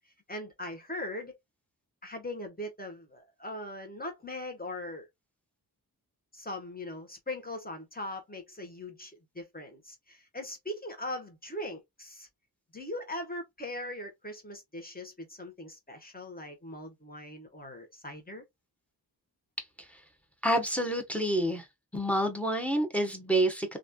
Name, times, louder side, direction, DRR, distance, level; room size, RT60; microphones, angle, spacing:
voice 1, 0.3-1.3 2.0-5.1 6.3-12.3 12.7-18.4, left 1 dB, 25° left, 1.1 m, -40 dB
voice 2, 20.4-21.6 21.9-23.8, right 1 dB, 5° left, 1.0 m, -28 dB
3.1 x 2.5 x 2.2 m
wide cardioid pair, 65°, 39 cm